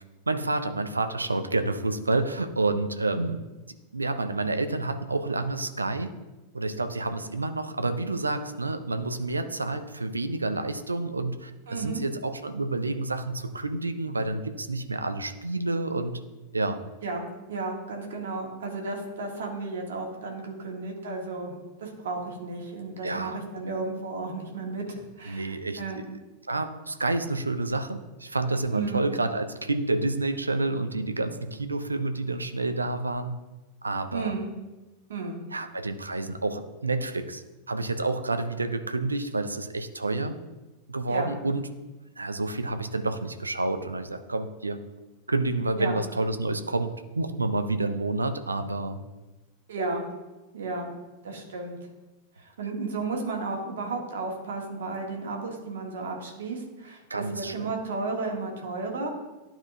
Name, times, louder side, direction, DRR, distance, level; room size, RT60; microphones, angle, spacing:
voice 1, 0.3-3.4 3.9-6.1 6.5-16.2 16.5-16.8 23.0-23.4 25.3-26.2 26.5-33.3 33.8-34.3 35.5-40.4 40.9-41.7 42.2-44.8 45.3-49.0 57.1-57.7, right 2 dB, 80° right, 9 dB, 0.5 m, -29 dB
voice 2, 11.7-12.0 17.0-26.0 28.7-29.1 34.1-34.5 35.1-35.4 41.1-41.3 45.7-45.9 49.7-50.1 50.5-50.9 51.2-51.8 52.4-59.1, right 3 dB, 60° right, 1 dB, 1.5 m, -33 dB
12.0 x 4.4 x 2.7 m, 1.1 s
figure-of-eight pair, 90°, 0 cm